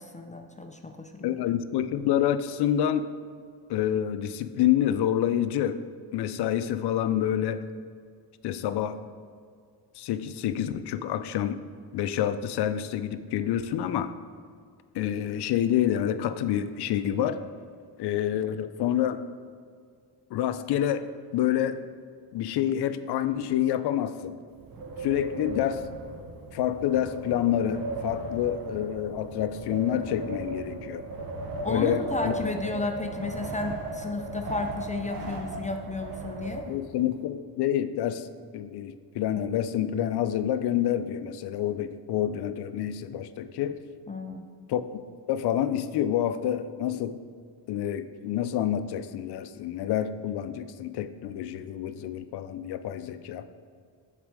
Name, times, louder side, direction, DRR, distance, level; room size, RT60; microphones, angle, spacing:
voice 1, 0.0-1.4 31.6-36.6 44.1-44.4, left 3 dB, 20° left, 5 dB, 0.4 m, -33 dB
voice 2, 1.2-3.1 3.7-5.8 6.1-7.6 8.4-9.0 10.0-11.6 11.9-14.1 14.9-17.4 18.0-19.2 20.3-21.1 21.3-21.8 22.3-24.4 25.0-25.8 26.5-31.0 31.7-32.4 36.7-38.3 38.5-43.8 44.7-44.8 45.3-47.2 47.7-53.5, left 10 dB, 70° left, 12 dB, 0.5 m, -28 dB
Wind, 24.5-37.1, right 2 dB, 55° right, 1.0 m, -37 dB
7.4 x 4.1 x 4.7 m, 2.1 s
cardioid pair, 90°, 41 cm